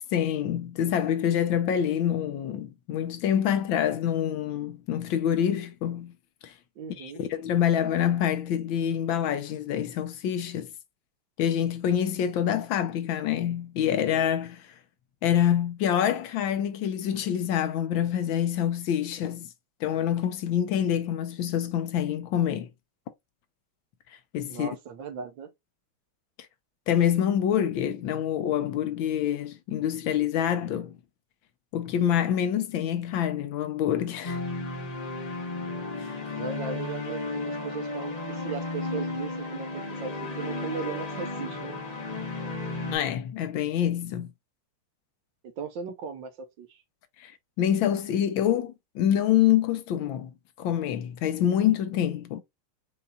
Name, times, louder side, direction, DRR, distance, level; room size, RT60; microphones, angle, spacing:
voice 1, 0.1-6.1 6.4-6.5 7.0-10.7 11.4-14.7 15.2-19.5 19.8-22.7 24.3-24.7 26.9-31.0 31.7-34.4 36.0-36.2 42.9-44.3 47.2-47.3 47.6-50.3 50.6-52.4, left 10 dB, 75° left, 1.3 m, -26 dB
voice 2, 6.8-7.2 24.5-25.5 36.3-39.7 40.0-41.8 45.4-46.8, right 6 dB, 70° right, 1.4 m, -37 dB
sound 1, 34.2-42.9, left 3 dB, 35° left, 0.6 m, -34 dB
5.5 x 4.0 x 2.3 m
omnidirectional pair, 2.3 m